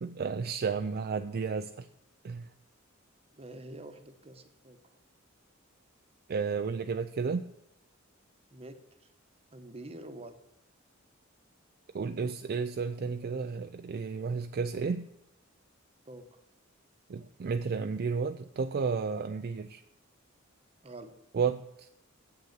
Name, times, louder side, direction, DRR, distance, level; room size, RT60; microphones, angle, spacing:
voice 1, 0.0-1.9 2.2-2.5 6.3-7.4 11.9-15.1 17.1-19.8 21.3-21.9, right 5 dB, 50° right, 8 dB, 0.4 m, -32 dB
voice 2, 3.3-4.8 8.5-8.8 9.5-10.4 16.1-16.4 20.8-21.2, right 1 dB, 30° right, 8 dB, 1.0 m, -46 dB
7.8 x 6.7 x 8.1 m, 0.79 s
head